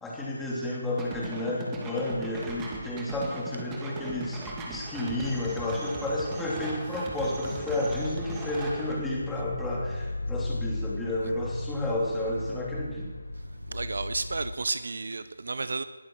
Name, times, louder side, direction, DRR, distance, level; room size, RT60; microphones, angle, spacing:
voice 1, 0.0-13.1, left 1 dB, 5° left, 3.3 m, -31 dB
sound 1, 1.0-8.9, right 2 dB, 15° right, 2.2 m, -38 dB
sound 2, 7.8-14.5, left 2 dB, 80° left, 1.6 m, -36 dB
voice 2, 13.7-15.8, right 3 dB, 65° right, 0.8 m, -32 dB
21.0 x 12.0 x 4.8 m
figure-of-eight pair, 160°, 0 cm